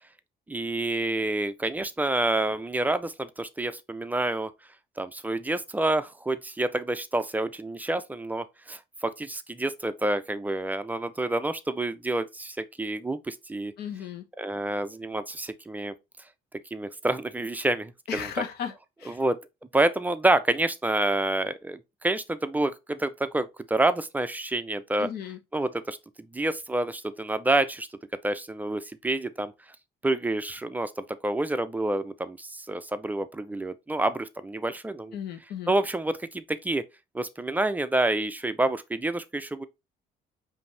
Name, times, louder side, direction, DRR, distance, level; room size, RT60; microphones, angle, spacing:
voice 1, 0.5-4.5 5.0-13.7 14.4-15.9 16.7-18.3 19.1-19.4 19.7-25.1 25.5-26.0 26.3-27.9 28.2-29.5 30.0-35.2 35.7-36.9 37.1-39.7, right 2 dB, 10° right, 0.4 m, -28 dB
voice 2, 13.8-14.2 18.1-18.7 19.0-19.2 25.0-25.4 35.1-35.7, left 8 dB, 75° left, 1.0 m, -35 dB
5.3 x 2.7 x 3.3 m
cardioid pair, 110°, 17 cm